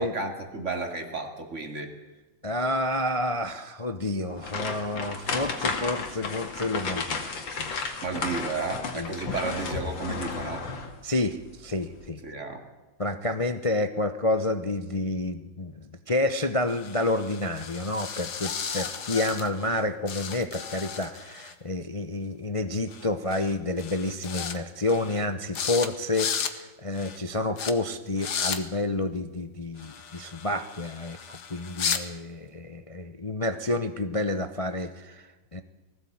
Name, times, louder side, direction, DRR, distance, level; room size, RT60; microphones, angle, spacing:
voice 1, 0.0-1.9 8.0-10.7 12.2-12.6, right 3 dB, 40° right, 5 dB, 2.8 m, -32 dB
voice 2, 2.4-7.7 8.9-9.1 11.0-12.2 13.0-35.6, left 2 dB, 35° left, 10 dB, 0.5 m, -29 dB
sound 1, 4.4-11.0 11.4-11.6 12.0-12.1, left 4 dB, 75° left, 2.9 m, -33 dB
sound 2, 16.7-19.8 20.1-21.5 22.9-23.1 23.3-23.5 23.8-24.6 24.9-25.2 25.5-25.9 26.1-26.5 26.9-27.2 27.6-27.7 28.2-28.6 29.8-32.0, left 7 dB, 60° left, 1.9 m, -34 dB
19.5 x 16.0 x 8.8 m, 1.2 s
omnidirectional pair, 2.1 m